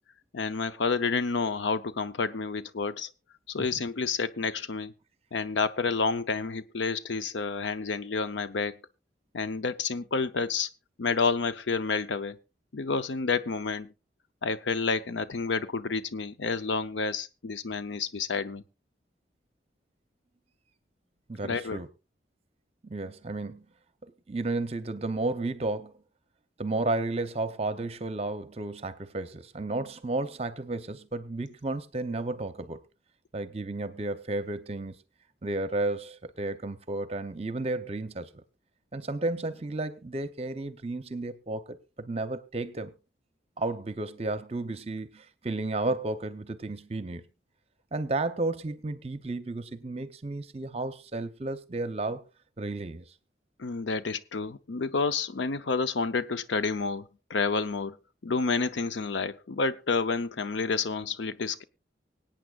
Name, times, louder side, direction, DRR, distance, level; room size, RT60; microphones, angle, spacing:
voice 1, 0.3-3.1 3.5-4.9 5.3-8.8 9.3-10.7 11.0-12.4 12.7-13.9 14.4-18.6 21.4-21.8 53.6-58.0 58.2-61.6, left 4 dB, 90° left, 0.6 m, -29 dB
voice 2, 21.3-21.9 22.8-23.7 24.0-25.9 26.6-32.8 33.3-34.9 35.4-38.4 38.9-42.9 43.6-47.2 47.9-52.2 52.6-53.1, right 2 dB, 35° right, 0.7 m, -33 dB
24.5 x 8.8 x 2.4 m
head